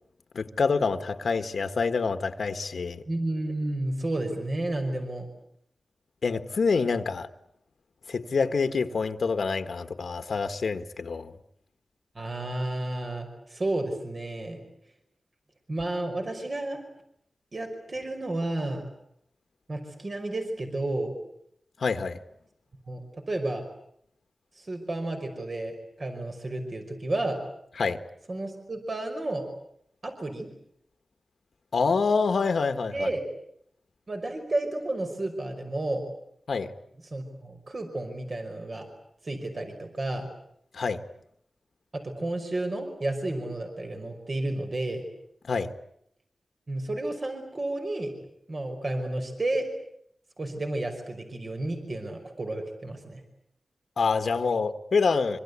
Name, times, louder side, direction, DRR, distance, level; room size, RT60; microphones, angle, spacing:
voice 1, 0.3-3.0 6.2-7.3 8.1-11.3 21.8-22.2 27.8-28.0 31.7-33.1 36.5-36.7 40.7-41.0 45.5-45.7 54.0-55.4, left 4 dB, 80° left, 9 dB, 1.6 m, -26 dB
voice 2, 3.1-5.3 12.2-14.6 15.7-16.8 17.5-18.8 19.7-21.1 22.9-23.6 24.6-27.4 28.3-29.5 30.0-30.5 32.9-33.2 34.1-36.1 37.0-38.9 39.2-40.3 41.9-45.1 46.7-48.1 48.5-49.7 50.4-53.2, right 2 dB, 45° right, 4 dB, 5.5 m, -31 dB
26.0 x 25.5 x 8.4 m, 0.71 s
wide cardioid pair, 75°, 0 cm